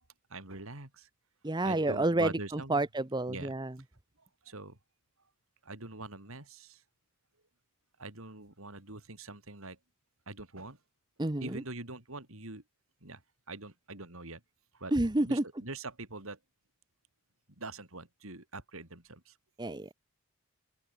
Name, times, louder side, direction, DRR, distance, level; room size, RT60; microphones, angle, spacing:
voice 1, 0.3-1.1 1.6-2.8 3.3-3.5 4.4-4.8 5.6-6.8 8.0-9.8 10.3-10.8 11.4-12.6 13.0-13.2 13.5-14.4 14.7-14.9 15.2-16.4 17.6-19.3, right 2 dB, 65° right, 4.1 m, -43 dB
voice 2, 1.4-3.8 11.2-11.6 14.9-15.4 19.6-19.9, right 2 dB, 20° right, 0.9 m, -29 dB
open air
head